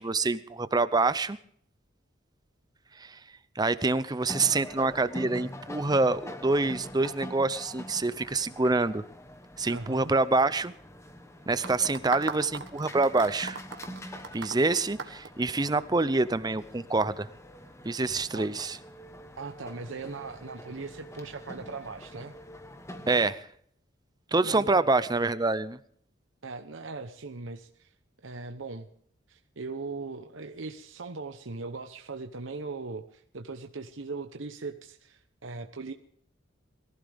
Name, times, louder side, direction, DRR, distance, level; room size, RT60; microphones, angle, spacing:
voice 1, 0.0-1.4 3.0-3.2 3.6-9.0 9.6-10.7 11.5-13.6 14.3-17.3 17.8-18.8 23.1-23.5 24.3-25.8, right 3 dB, 20° right, 15 dB, 0.6 m, -26 dB
sound 1, 4.3-23.3, equal, 15° left, 1.2 m, -45 dB
voice 2, 9.7-10.1 18.3-18.5 19.4-22.3 24.4-24.8 26.4-27.9 28.2-28.9 29.3-35.9, right 3 dB, 85° right, 5 dB, 1.0 m, -39 dB
sound 2, 11.6-16.0, right 4 dB, 65° right, 1.6 m, -37 dB
22.0 x 15.5 x 3.5 m, 0.62 s
head